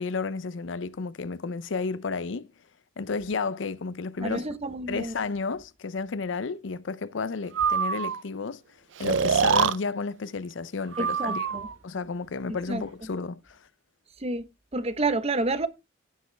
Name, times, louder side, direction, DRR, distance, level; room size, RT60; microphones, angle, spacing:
voice 1, 0.0-2.5 3.0-4.4 4.9-8.6 9.0-13.6, left 4 dB, 75° left, 0.6 m, -32 dB
voice 2, 4.2-5.1 11.0-11.7 12.7-12.8 14.2-14.5 14.7-15.7, right 2 dB, 35° right, 1.0 m, -29 dB
Breathing, 7.5-8.2 9.0-9.8 10.9-11.7, right 6 dB, 75° right, 0.6 m, -25 dB
15.5 x 5.3 x 3.3 m
head